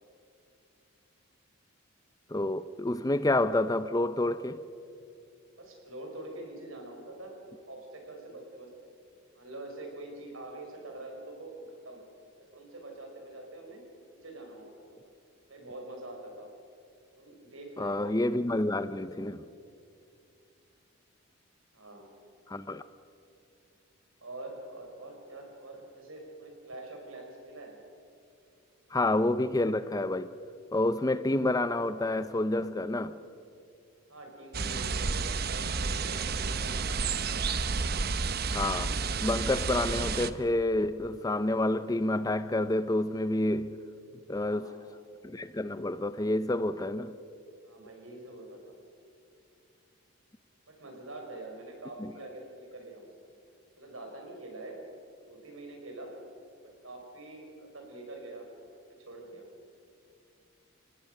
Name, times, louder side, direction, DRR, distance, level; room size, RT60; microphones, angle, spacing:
voice 1, 2.3-4.6 17.8-19.5 22.5-22.8 28.9-30.3 30.7-33.2 38.5-38.9 39.2-43.8 44.3-44.7 45.2-47.1 52.0-52.1, left 2 dB, 15° left, 0.5 m, -28 dB
voice 2, 5.6-8.7 9.3-12.0 12.4-13.8 14.1-14.7 15.0-15.1 15.5-16.5 17.2-18.2 21.7-22.1 24.2-27.8 34.1-37.5 44.4-44.8 47.6-48.6 50.7-53.1 53.8-54.8 55.3-56.1 56.6-58.4 58.9-59.4, right 2 dB, 75° right, 5.1 m, -45 dB
sound 1, 34.5-40.3, right 4 dB, 45° right, 0.7 m, -31 dB
29.5 x 18.0 x 6.6 m
head